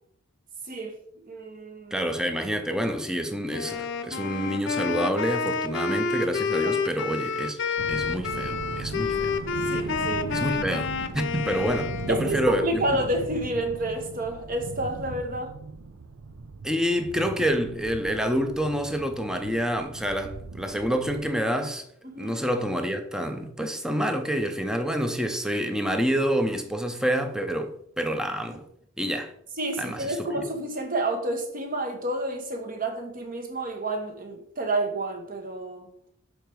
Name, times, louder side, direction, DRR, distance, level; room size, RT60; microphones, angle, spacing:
voice 1, 1.2-2.0 6.6-6.7 9.7-10.3 12.1-15.5 22.1-22.4 29.6-35.9, right 1 dB, 40° right, 1.2 m, -29 dB
voice 2, 1.9-7.6 7.9-9.4 10.3-12.8 16.6-21.8 22.2-28.6 29.0-29.3 29.8-30.4, equal, 5° right, 0.6 m, -28 dB
Wind instrument woodwind instrument, 3.5-12.3, left 5 dB, 55° left, 0.6 m, -29 dB
sound 1, 7.8-21.3, right 3 dB, 75° right, 0.6 m, -38 dB
6.7 x 4.5 x 4.6 m
head